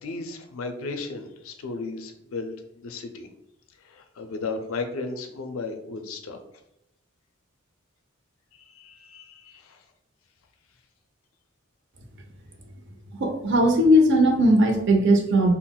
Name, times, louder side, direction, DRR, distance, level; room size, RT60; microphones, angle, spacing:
voice 1, 0.0-3.3 3.8-6.4 8.5-9.8, left 3 dB, 75° left, 6 dB, 0.4 m, -35 dB
voice 2, 13.2-15.5, equal, 60° right, 4 dB, 0.5 m, -18 dB
3.8 x 2.0 x 2.3 m, 0.81 s
head